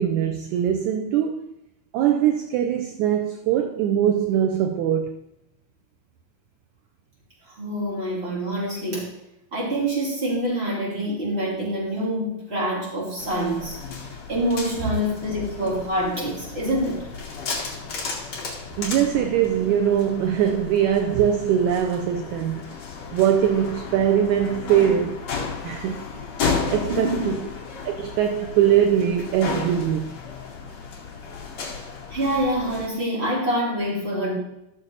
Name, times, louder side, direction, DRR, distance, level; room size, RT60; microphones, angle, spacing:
voice 1, 0.0-1.5 1.9-5.2 18.8-22.7 23.1-25.3 25.6-26.1 26.7-27.5 27.8-30.2, right 9 dB, 75° right, 1.9 m, -22 dB
voice 2, 7.6-9.1 9.5-13.8 14.3-17.1 26.9-27.3 32.1-34.3, equal, 20° right, 3.2 m, -26 dB
sound 1, 13.2-32.9, left 5 dB, 50° left, 3.2 m, -33 dB
14.0 x 6.8 x 4.0 m
omnidirectional pair, 3.9 m